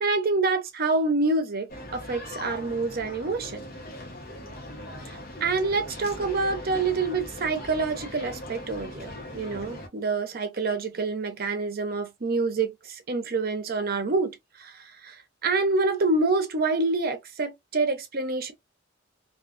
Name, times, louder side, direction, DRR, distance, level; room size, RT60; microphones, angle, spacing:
voice 1, 0.0-3.7 5.1-18.5, right 3 dB, 50° right, 0.6 m, -27 dB
sound 1, 1.7-9.9, left 1 dB, 50° left, 0.9 m, -40 dB
2.4 x 2.3 x 2.4 m
head